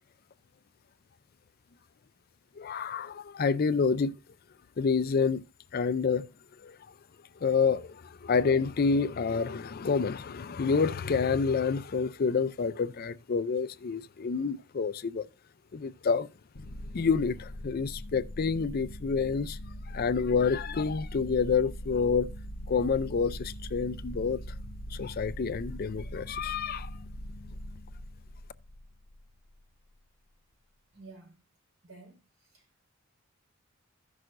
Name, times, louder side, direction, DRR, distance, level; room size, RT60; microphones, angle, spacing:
voice 1, 2.6-4.1 4.8-5.4 5.7-6.3 6.6-6.8 7.4-15.3 15.7-16.3 16.9-19.6 19.9-22.3 22.7-24.4 24.9-26.9, left 5 dB, 45° left, 0.4 m, -28 dB
sound 1, 16.5-29.4, equal, 65° left, 0.8 m, -42 dB
voice 2, 30.9-31.4 31.8-32.8, right 3 dB, 70° right, 4.5 m, -52 dB
15.5 x 6.3 x 2.5 m
head